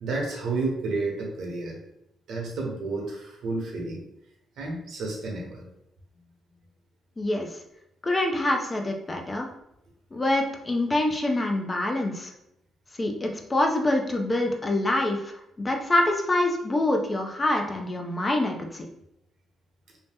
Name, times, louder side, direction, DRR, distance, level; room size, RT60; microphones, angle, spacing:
voice 1, 0.0-1.8 2.3-4.0 4.6-5.7, right 3 dB, 75° right, 0 dB, 0.9 m, -31 dB
voice 2, 7.2-7.5 8.0-9.5 10.1-12.3 12.9-18.9, left 1 dB, 25° left, 2 dB, 0.5 m, -25 dB
2.8 x 2.1 x 3.4 m, 0.80 s
cardioid pair, 90°, 0 cm